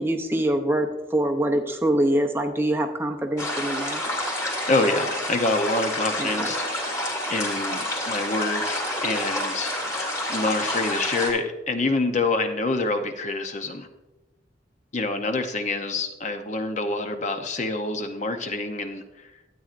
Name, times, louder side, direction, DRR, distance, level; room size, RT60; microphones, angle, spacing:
voice 1, 0.0-4.0 6.2-6.5, right 1 dB, 10° right, 4 dB, 0.6 m, -24 dB
sound 1, 3.4-11.3, left 1 dB, 15° left, 2.3 m, -28 dB
voice 2, 4.7-13.9 14.9-19.3, left 2 dB, 40° left, 7 dB, 0.7 m, -27 dB
12.5 x 8.7 x 2.5 m, 1.0 s
head